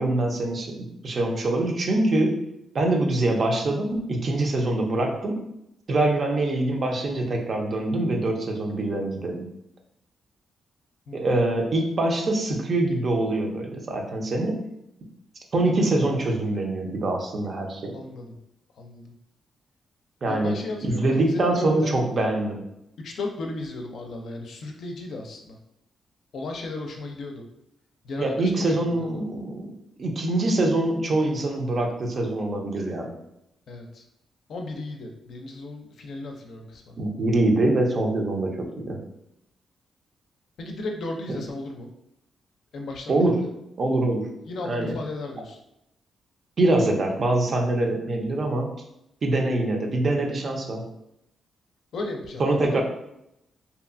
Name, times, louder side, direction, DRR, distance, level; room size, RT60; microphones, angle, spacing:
voice 1, 0.0-2.4 2.7-5.4 5.9-9.5 11.1-14.6 15.5-18.0 20.2-20.6 20.9-22.6 28.2-29.7 30.0-33.2 37.0-39.0 43.1-43.4 43.8-44.3 44.6-45.0 46.6-48.7 49.2-50.8 52.4-52.8, right 2 dB, 55° right, 2 dB, 0.5 m, -24 dB
voice 2, 17.9-18.4 18.8-19.2 20.3-22.0 23.0-25.6 26.3-27.5 28.0-29.2 33.7-34.0 34.5-37.0 40.6-41.9 42.7-43.4 44.5-45.6 51.9-52.8, left 2 dB, 70° left, 2 dB, 0.4 m, -35 dB
2.7 x 2.3 x 2.5 m, 0.82 s
cardioid pair, 65°, 0 cm